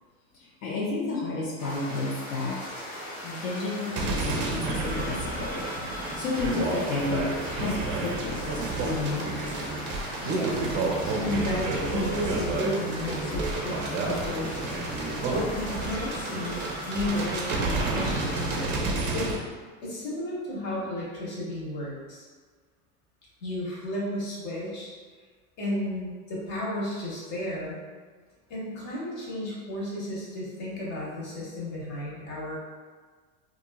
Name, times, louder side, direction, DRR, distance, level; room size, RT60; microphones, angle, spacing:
voice 1, 0.3-2.6 3.2-5.6 6.2-9.3, left 3 dB, 80° left, -5 dB, 0.7 m, -31 dB
sound 1, 1.6-18.7, left 1 dB, 20° left, 0.6 m, -39 dB
sound 2, 4.0-19.4, right 3 dB, 30° right, 0.4 m, -30 dB
voice 2, 10.2-10.7 11.2-14.6 15.3-19.4 19.8-22.2 23.4-24.9 25.6-27.8 28.5-32.6, left 1 dB, 45° left, -5 dB, 1.1 m, -33 dB
2.7 x 2.5 x 2.2 m, 1.5 s
hypercardioid pair, 105°, 40 cm